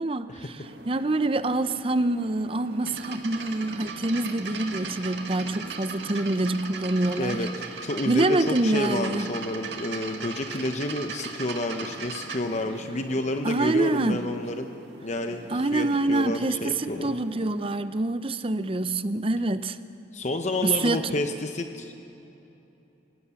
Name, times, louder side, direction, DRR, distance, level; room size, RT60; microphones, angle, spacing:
voice 1, 0.0-7.5 8.0-9.3 13.4-14.3 15.5-19.8 20.6-21.1, right 2 dB, 30° right, 12 dB, 0.6 m, -26 dB
sound 1, 0.6-17.9, right 1 dB, 60° right, 1.6 m, -45 dB
sound 2, 2.8-12.4, right 5 dB, 80° right, 1.8 m, -38 dB
voice 2, 7.2-7.5 7.8-14.7 15.0-15.4 15.7-17.1 20.1-21.9, left 2 dB, 40° left, 6 dB, 0.8 m, -29 dB
26.5 x 17.0 x 7.1 m, 2.9 s
head